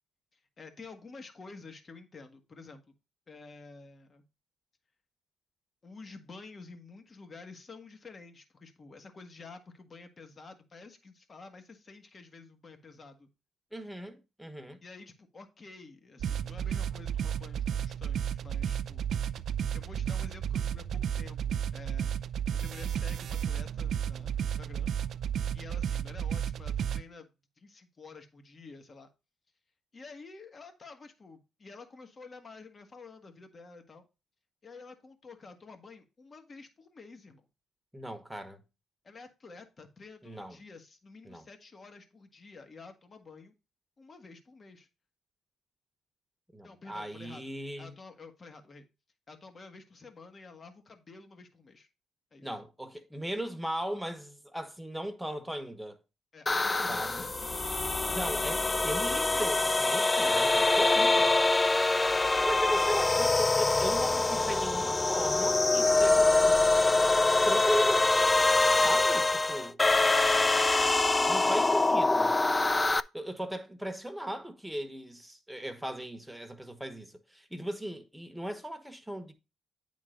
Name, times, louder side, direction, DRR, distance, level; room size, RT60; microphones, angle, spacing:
voice 1, 0.3-2.9 3.3-4.2 5.8-13.3 14.8-19.1 19.7-22.2 22.5-24.9 25.5-27.3 27.6-29.1 29.9-34.0 34.6-37.4 39.0-43.5 44.0-44.9 46.6-48.9 49.3-51.9 52.3-52.5 56.3-57.8 62.4-62.9 68.7-68.9, left 4 dB, 40° left, 1.4 m, -50 dB
voice 2, 13.7-14.8 37.9-38.6 40.2-40.6 41.2-41.4 46.5-47.9 52.4-56.0 56.9-57.3 58.1-61.3 62.4-66.7 67.4-68.1 68.7-69.8 71.3-72.4 73.1-79.3, right 1 dB, 5° right, 1.1 m, -37 dB
sound 1, 16.2-27.0, right 9 dB, 65° right, 0.4 m, -32 dB
sound 2, 56.5-73.0, left 2 dB, 20° left, 0.3 m, -25 dB
9.0 x 3.8 x 4.9 m
cardioid pair, 90°, 0 cm